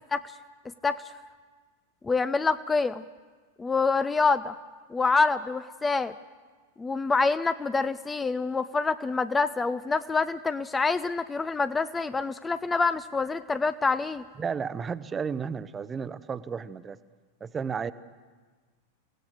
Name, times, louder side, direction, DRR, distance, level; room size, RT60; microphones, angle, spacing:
voice 1, 2.0-3.0 3.6-4.6 4.9-6.1 6.8-14.2, left 4 dB, 15° left, 13 dB, 0.6 m, -26 dB
voice 2, 14.4-17.0 17.4-17.9, right 6 dB, 20° right, 15 dB, 0.8 m, -33 dB
29.0 x 17.0 x 6.6 m, 1.4 s
figure-of-eight pair, 90°, 0 cm